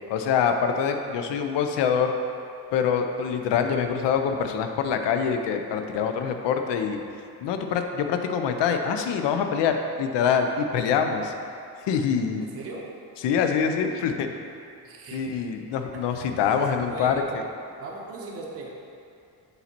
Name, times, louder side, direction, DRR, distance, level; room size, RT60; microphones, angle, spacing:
voice 1, 0.1-2.1 2.7-7.0 7.4-11.3 11.9-12.4 13.2-14.3 15.1-17.4, left 7 dB, 80° left, 6 dB, 0.6 m, -25 dB
voice 2, 12.4-12.9 14.8-15.3 15.9-16.2 16.5-17.2 17.8-18.7, right 3 dB, 35° right, -2 dB, 0.6 m, -38 dB
6.8 x 4.2 x 4.4 m, 2.5 s
cardioid pair, 165°, 42 cm